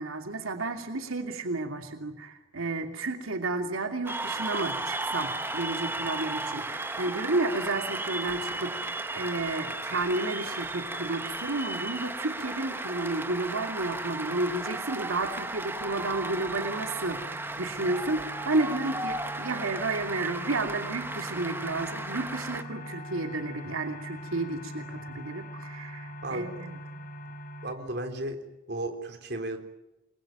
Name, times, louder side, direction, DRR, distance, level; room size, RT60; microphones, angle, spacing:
voice 1, 0.0-26.8, right 2 dB, 85° right, 5 dB, 2.7 m, -32 dB
Cheering / Applause, 4.1-22.6, right 2 dB, 10° right, 1.1 m, -35 dB
sound 1, 15.7-27.7, equal, 45° left, 4.1 m, -43 dB
voice 2, 27.6-28.4 28.7-29.6, right 1 dB, 50° right, 5 dB, 3.7 m, -34 dB
28.0 x 22.0 x 9.1 m, 0.94 s
head